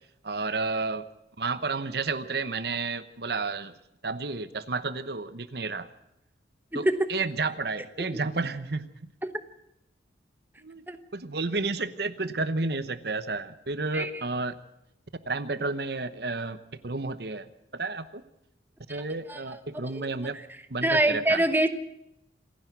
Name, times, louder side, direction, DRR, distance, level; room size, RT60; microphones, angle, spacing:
voice 1, 0.2-1.0 1.4-3.7 4.0-5.9 6.7-8.9 10.6-10.8 11.1-14.6 15.3-16.6 16.8-17.5 17.7-18.2 18.9-20.4 20.7-21.4, right 3 dB, 60° right, 13 dB, 1.0 m, -31 dB
voice 2, 6.7-7.1 9.2-9.3 10.9-11.0 13.9-14.2 18.9-19.0 19.3-19.4 19.8-20.1 20.8-21.7, right 1 dB, 10° right, 9 dB, 1.0 m, -25 dB
27.0 x 10.5 x 9.3 m, 0.84 s
head